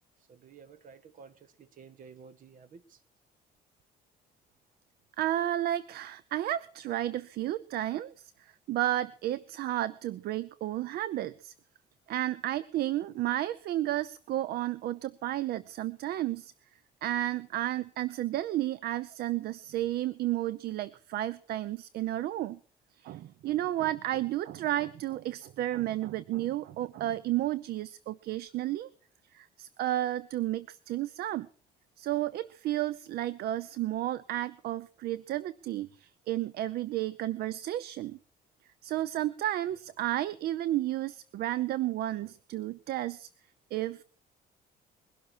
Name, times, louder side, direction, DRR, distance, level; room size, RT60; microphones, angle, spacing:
voice 1, 0.3-3.0, right 6 dB, 50° right, 1.7 m, -52 dB
voice 2, 5.2-11.5 12.1-16.5 17.0-22.6 23.0-28.9 29.3-31.5 32.0-38.2 38.8-43.3 43.7-44.0, right 14 dB, 65° right, 0.6 m, -32 dB
21.5 x 12.0 x 4.5 m
cardioid pair, 110°, 17 cm